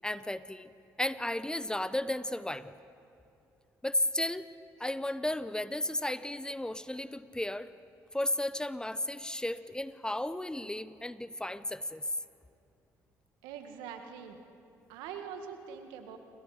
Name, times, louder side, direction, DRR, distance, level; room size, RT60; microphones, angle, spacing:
voice 1, 0.0-0.7 1.0-2.7 3.8-4.5 4.8-7.7 8.1-12.0, left 1 dB, 10° left, 14 dB, 0.9 m, -34 dB
voice 2, 13.4-14.4 14.9-16.2, right 7 dB, 85° right, 6 dB, 1.9 m, -43 dB
28.0 x 25.5 x 5.1 m, 2.7 s
supercardioid pair, 60°, 8 cm